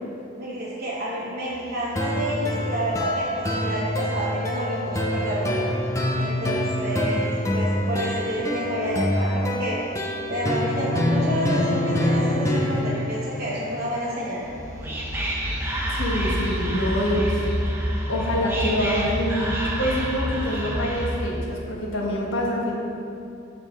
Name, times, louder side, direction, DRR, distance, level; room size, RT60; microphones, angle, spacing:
voice 1, 0.4-5.6 6.1-9.8 10.3-14.4, equal, 50° right, -8 dB, 1.0 m, -29 dB
sound 1, 1.5-17.4, equal, 85° right, 0.9 m, -46 dB
sound 2, 2.0-13.0, left 1 dB, 15° left, 0.5 m, -25 dB
Whispering, 14.4-21.4, equal, 10° right, 0.8 m, -27 dB
voice 2, 15.9-17.5 18.1-22.8, equal, 65° left, -3 dB, 1.3 m, -26 dB
13.0 x 4.5 x 3.2 m, 2.7 s
head